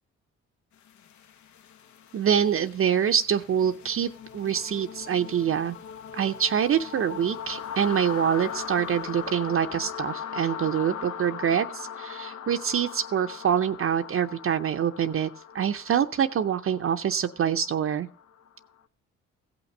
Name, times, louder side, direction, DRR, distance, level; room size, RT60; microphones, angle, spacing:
sound 1, 0.9-18.7, left 8 dB, 70° left, 0.8 m, -40 dB
voice 1, 2.1-5.7 6.1-15.3 15.5-18.1, right 8 dB, 45° right, 6 dB, 0.6 m, -25 dB
16.0 x 5.9 x 5.4 m, 0.42 s
cardioid pair, 90°, 30 cm